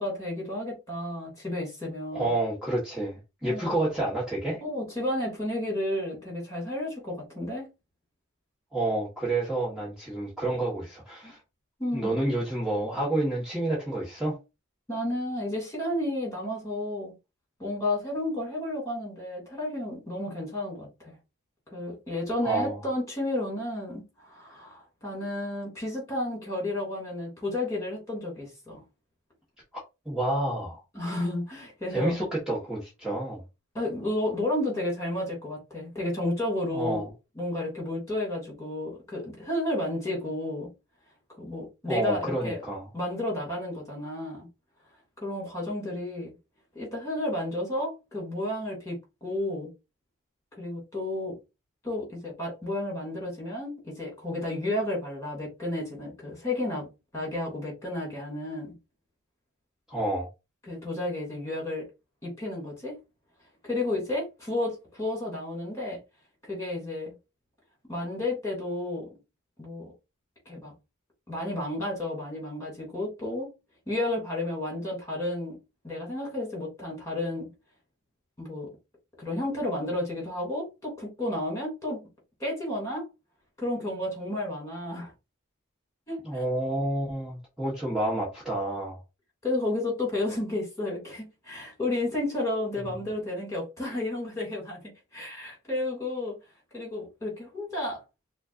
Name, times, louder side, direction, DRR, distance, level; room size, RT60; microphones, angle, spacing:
voice 1, 0.0-2.3 3.4-3.8 4.6-7.7 11.2-11.3 11.8-12.2 14.9-17.1 17.6-21.1 21.7-28.8 30.9-32.2 33.7-37.0 37.4-40.7 41.3-42.6 42.9-44.5 45.2-46.3 46.7-49.7 50.6-51.3 51.8-56.9 57.1-58.7 60.6-61.9 62.2-63.0 63.6-66.0 66.4-67.1 67.9-69.1 69.6-69.9 70.5-70.7 71.3-73.5 73.9-75.6 75.8-77.5 78.4-78.7 79.2-82.0 82.4-83.1 83.6-85.1 86.1-86.4 89.4-94.8 95.1-96.3 96.7-98.0, left 1 dB, 15° left, 2.6 m, -32 dB
voice 2, 2.1-4.6 8.7-11.4 11.9-14.4 22.4-22.8 30.0-30.8 31.9-33.4 36.7-37.0 41.9-42.8 59.9-60.3 86.2-89.0, right 1 dB, 5° right, 1.4 m, -29 dB
5.8 x 2.5 x 2.6 m
head